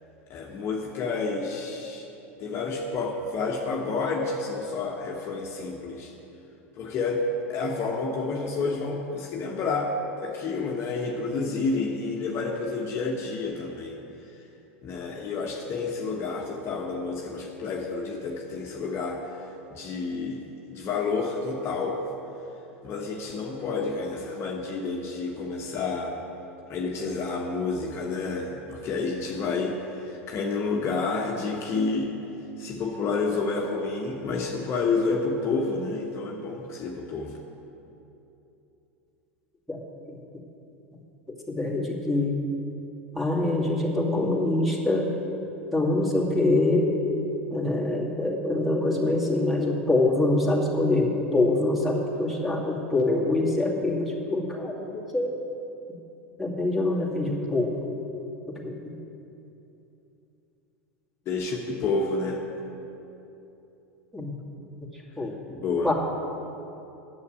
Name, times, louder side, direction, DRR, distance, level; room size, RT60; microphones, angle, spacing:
voice 1, 0.3-2.1 2.4-6.1 6.8-7.2 7.5-9.9 10.2-14.0 14.3-14.4 14.8-19.2 19.7-22.0 22.8-26.2 26.7-32.2 32.6-37.4 61.3-62.4 65.5-65.9, left 4 dB, 40° left, 0 dB, 1.2 m, -29 dB
voice 2, 41.3-42.4 43.1-45.1 45.7-46.9 47.5-55.4 56.4-57.9 58.5-58.9 64.1-64.4 64.9-65.4 65.8-65.9, left 2 dB, ahead, -3 dB, 2.3 m, -25 dB
9.6 x 7.5 x 9.1 m, 2.9 s
figure-of-eight pair, 85°, 7 cm